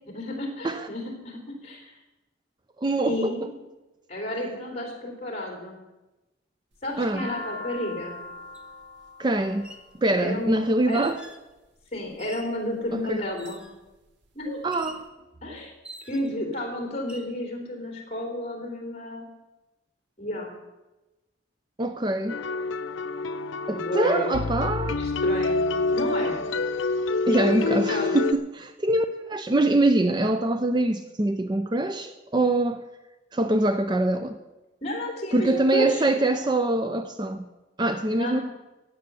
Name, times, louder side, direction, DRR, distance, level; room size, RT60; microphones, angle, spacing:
voice 1, 0.1-2.0 3.0-3.6 4.1-5.8 6.8-8.3 10.2-11.0 11.9-13.6 14.3-14.6 15.4-15.7 16.1-19.3 20.2-20.5 23.7-24.3 25.0-26.4 27.3-28.2 34.8-36.0 38.1-38.4, left 1 dB, 35° left, 3.4 m, -32 dB
voice 2, 2.8-3.3 7.0-7.3 9.2-9.7 10.0-11.2 12.9-13.2 14.6-15.0 21.8-22.4 23.7-25.0 27.3-32.8 33.3-34.4 35.3-37.4 37.8-38.4, right 2 dB, 20° right, 0.5 m, -24 dB
sound 1, 6.7-11.0 11.8-12.3 12.9-13.5 13.9-14.0 14.1-15.0, left 2 dB, 65° right, 1.2 m, -41 dB
sound 2, 8.5-8.7 9.5-9.9 10.9-11.5 12.2-12.6 13.4-13.8 14.7-15.1 15.8-16.4 17.0-17.3, right 1 dB, 5° right, 0.9 m, -45 dB
sound 3, 22.3-28.3, left 3 dB, 85° left, 0.6 m, -27 dB
14.5 x 9.2 x 6.9 m
head